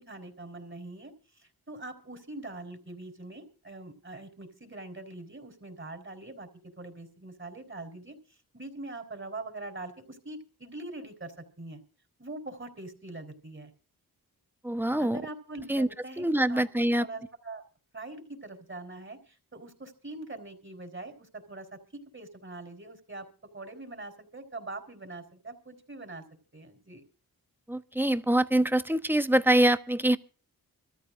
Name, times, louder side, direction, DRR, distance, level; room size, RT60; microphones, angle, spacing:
voice 1, 0.0-11.8 12.2-13.7 15.0-17.6 17.9-23.3 23.5-26.2 26.5-27.0, right 2 dB, 30° right, 4 dB, 4.4 m, -43 dB
voice 2, 14.6-15.2 15.7-15.9 16.2-17.0 27.7-30.2, right 1 dB, 5° right, 12 dB, 1.1 m, -24 dB
25.5 x 14.0 x 2.7 m, 0.38 s
cardioid pair, 50°, 38 cm